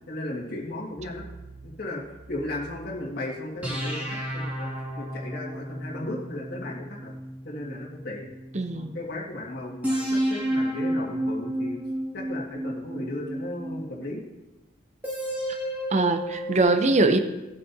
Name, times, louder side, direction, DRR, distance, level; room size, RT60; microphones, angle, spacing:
voice 1, 0.1-1.2 1.6-2.0 2.3-7.1 7.5-8.3 8.7-11.8 12.1-14.2, left 1 dB, 50° left, -3 dB, 1.9 m, -35 dB
sound 1, 1.0-3.0 3.6-8.8 9.8-14.1 15.0-16.6, right 1 dB, 10° right, 2.0 m, -32 dB
voice 2, 8.5-9.0 15.9-17.2, right 3 dB, 35° right, 8 dB, 0.6 m, -22 dB
17.5 x 8.2 x 2.7 m, 1.0 s
head